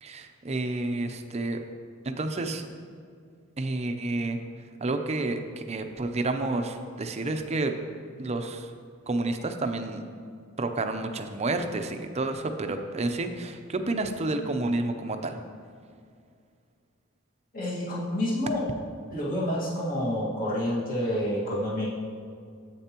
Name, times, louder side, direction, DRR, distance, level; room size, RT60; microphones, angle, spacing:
voice 1, 0.0-1.6 2.0-2.7 3.6-4.4 4.8-7.8 8.2-8.7 9.1-10.1 10.6-15.4, right 2 dB, 30° right, 6 dB, 0.6 m, -30 dB
voice 2, 17.5-18.6 19.1-21.9, left 1 dB, 40° left, -7 dB, 1.8 m, -28 dB
10.0 x 8.2 x 2.9 m, 2.2 s
head